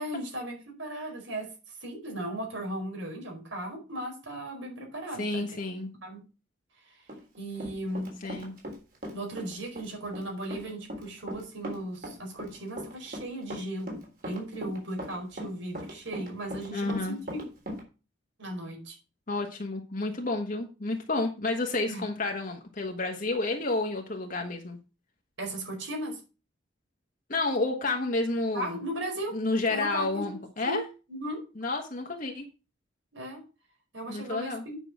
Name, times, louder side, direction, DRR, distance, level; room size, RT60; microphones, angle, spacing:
voice 1, 0.0-5.4 6.0-6.2 6.8-7.0 7.4-8.2 9.1-17.5 18.4-19.0 21.9-22.0 25.4-26.2 28.5-29.4 29.7-30.3 30.6-30.8 31.1-31.4 33.1-33.4 33.9-34.8, right 1 dB, 90° right, 1 dB, 4.9 m, -36 dB
voice 2, 5.2-5.9 8.2-8.5 16.7-17.2 19.3-24.8 27.3-28.8 29.3-30.8 31.6-32.5 34.1-34.6, left 2 dB, 45° left, 2 dB, 1.3 m, -30 dB
Run, 7.1-8.8 9.0-17.8, equal, 50° right, 3.6 m, -39 dB
9.3 x 5.9 x 6.0 m, 0.32 s
head